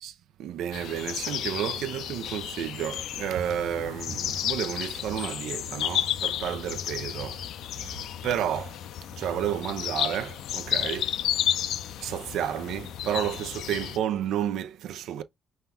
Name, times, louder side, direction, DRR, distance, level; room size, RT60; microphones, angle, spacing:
voice 1, 0.0-11.5 11.9-15.2, right 10 dB, 85° right, 0.5 m, -32 dB
sound 1, 0.7-14.0, left 10 dB, 80° left, 0.4 m, -32 dB
5.6 x 2.4 x 3.3 m
cardioid pair, 90°, 0 cm